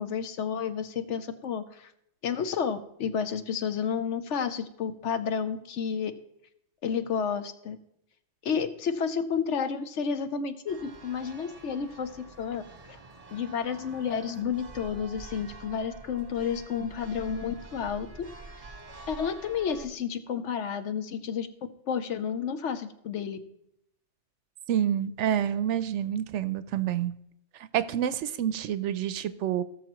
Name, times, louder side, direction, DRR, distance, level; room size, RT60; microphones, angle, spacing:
voice 1, 0.0-1.9 2.2-6.1 6.8-7.8 8.4-12.6 12.9-13.0 13.3-18.1 19.1-21.5 21.9-23.4, left 7 dB, 70° left, 10 dB, 1.0 m, -31 dB
Church bell, 10.7-19.9, right 3 dB, 30° right, 0.9 m, -47 dB
voice 2, 24.7-27.1 27.7-29.6, right 10 dB, 70° right, 14 dB, 0.8 m, -28 dB
18.0 x 6.7 x 3.0 m, 0.77 s
omnidirectional pair, 1.3 m